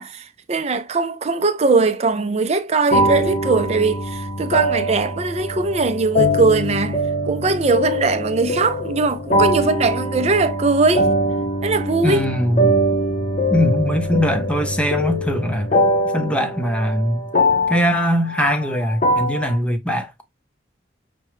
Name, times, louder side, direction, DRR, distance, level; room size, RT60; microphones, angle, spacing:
voice 1, 0.0-11.1 11.6-12.3, right 3 dB, 35° right, 0.5 m, -20 dB
sound 1, 2.9-19.6, equal, 40° left, 0.7 m, -22 dB
voice 2, 12.0-12.8 13.5-15.8 16.1-17.2 17.7-20.2, equal, 5° left, 0.6 m, -21 dB
6.0 x 2.2 x 3.0 m
head